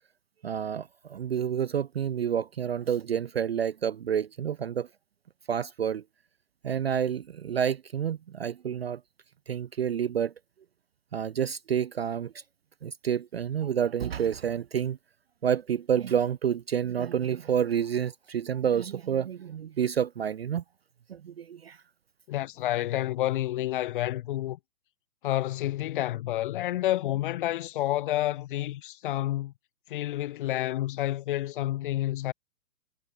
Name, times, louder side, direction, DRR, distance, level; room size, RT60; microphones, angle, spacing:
voice 1, 0.4-4.9 5.5-6.0 6.6-9.0 9.5-10.3 11.1-12.3 12.8-15.0 15.4-20.6 21.1-21.8, right 8 dB, 40° right, 0.5 m, -29 dB
voice 2, 22.3-24.6 25.2-29.5 29.9-32.3, left 14 dB, 30° left, 1.1 m, -29 dB
figure-of-eight pair, 125°, 48 cm